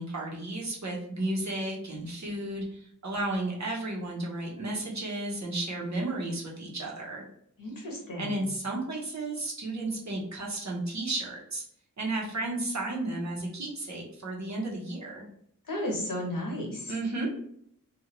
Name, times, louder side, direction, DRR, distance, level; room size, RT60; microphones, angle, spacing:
voice 1, 0.0-7.2 8.2-11.6 12.0-15.2 16.9-17.3, right 2 dB, 55° right, -3 dB, 0.9 m, -33 dB
voice 2, 7.6-8.4 15.7-16.9, left 1 dB, 80° left, 0 dB, 1.0 m, -33 dB
2.5 x 2.4 x 3.0 m, 0.69 s
wide cardioid pair, 45°, 33 cm